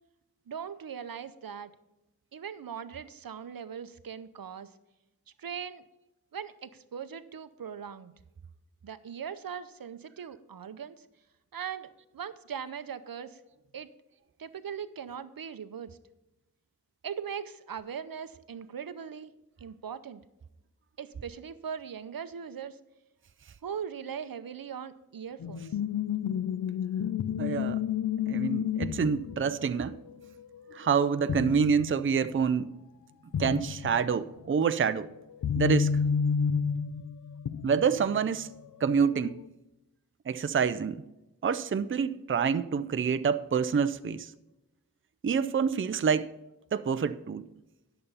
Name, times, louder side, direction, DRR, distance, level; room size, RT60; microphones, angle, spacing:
voice 1, 0.5-1.7 2.3-4.7 5.4-5.8 6.3-8.1 8.8-11.0 11.5-13.4 13.7-13.9 14.4-16.0 17.0-19.3 19.6-20.2 21.0-22.8 23.6-25.7, right 7 dB, 80° right, 13 dB, 0.6 m, -40 dB
sound 1, 25.4-31.0 31.3-32.0 32.3-32.4 33.3-34.1 34.9-38.3 39.0-39.4, left 7 dB, 60° left, 0.5 m, -31 dB
voice 2, 27.4-27.8 28.3-29.9 30.7-32.6 33.4-35.1 35.6-35.9 37.6-38.5 38.8-39.4 40.3-41.0 41.4-44.3 45.2-46.3 46.7-47.5, right 6 dB, 35° right, 12 dB, 0.5 m, -27 dB
11.0 x 6.8 x 5.5 m, 0.97 s
wide cardioid pair, 80°, 35 cm